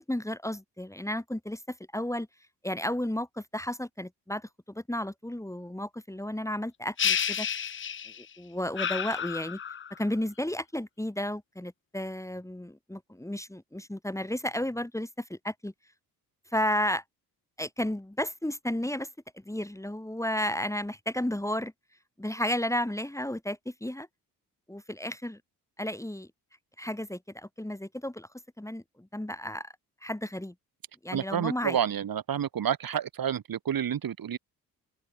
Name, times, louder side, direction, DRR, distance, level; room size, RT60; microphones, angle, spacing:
voice 1, 0.0-2.3 2.6-7.7 8.2-9.6 10.0-15.7 16.5-17.0 17.6-19.1 19.3-21.7 22.2-24.1 24.7-25.4 25.8-26.3 26.8-28.3 28.6-29.7 30.0-30.5 31.0-31.8, left 1 dB, 5° left, 2.6 m, -33 dB
sound 1, 7.0-8.3 8.8-10.0, left 8 dB, 25° left, 0.7 m, -30 dB
voice 2, 31.1-34.4, right 9 dB, 45° right, 3.1 m, -29 dB
open air
figure-of-eight pair, 40°, 46 cm